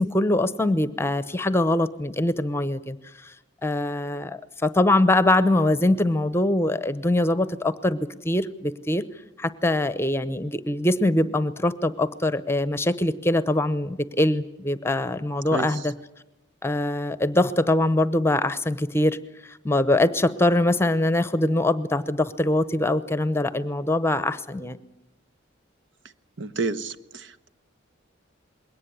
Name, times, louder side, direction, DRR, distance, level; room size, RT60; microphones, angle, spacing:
voice 1, 0.0-3.0 3.2-3.3 3.6-8.0 8.2-9.0 9.4-15.9 16.6-19.2 19.5-24.8, left 1 dB, 10° left, 15 dB, 0.8 m, -23 dB
voice 2, 26.4-27.5, right 3 dB, 65° right, 9 dB, 1.1 m, -30 dB
21.5 x 18.0 x 9.8 m, 0.94 s
head